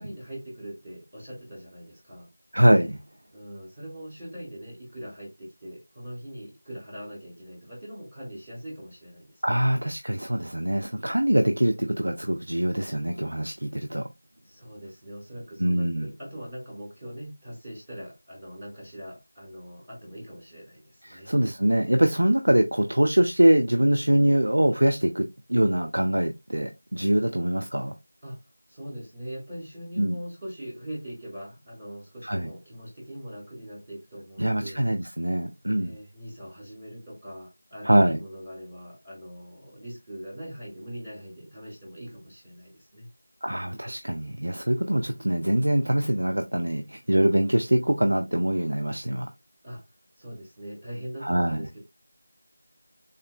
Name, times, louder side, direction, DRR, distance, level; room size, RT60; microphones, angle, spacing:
voice 1, 0.0-2.3 3.3-9.6 14.4-21.3 28.2-28.4 28.7-34.8 35.8-43.1 49.6-49.8 50.2-51.8, equal, 20° right, 0.9 m, -41 dB
voice 2, 2.5-3.0 9.4-14.0 15.6-16.1 21.0-27.9 30.0-30.2 32.2-32.5 34.4-35.9 37.8-38.2 43.4-49.3 51.2-51.7, right 1 dB, 80° right, 0.4 m, -23 dB
3.6 x 2.1 x 2.2 m
figure-of-eight pair, 170°, 0 cm